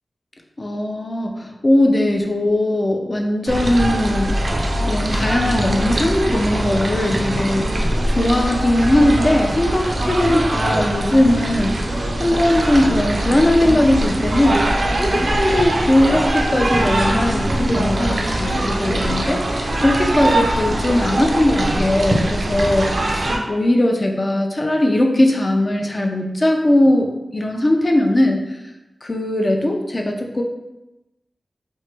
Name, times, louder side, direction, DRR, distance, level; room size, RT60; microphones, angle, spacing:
voice 1, 0.6-7.7 8.1-14.6 14.9-19.4 19.8-28.4 29.0-30.4, left 1 dB, 40° left, 2 dB, 0.4 m, -19 dB
sound 1, 3.5-23.4, right 1 dB, 60° right, 0.4 m, -21 dB
3.0 x 2.1 x 3.1 m, 0.98 s
wide cardioid pair, 70°, 0 cm